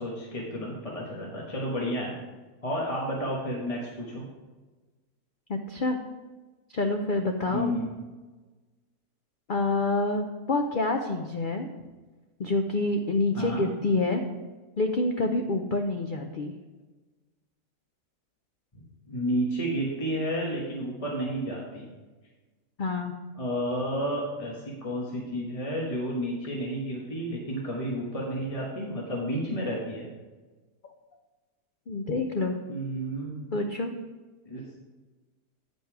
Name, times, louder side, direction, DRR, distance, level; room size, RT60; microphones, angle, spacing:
voice 1, 0.0-2.1 2.6-4.2 7.5-7.9 13.3-13.6 19.1-21.9 23.4-30.1 32.7-33.4 34.4-34.6, equal, 25° left, -3 dB, 1.1 m, -31 dB
voice 2, 5.5-6.0 6.7-7.7 9.5-11.7 12.4-14.2 14.8-16.5 22.8-23.1 31.9-32.6 33.5-33.9, left 2 dB, 85° left, 4 dB, 0.4 m, -27 dB
9.2 x 5.4 x 4.7 m, 1.3 s
omnidirectional pair, 1.7 m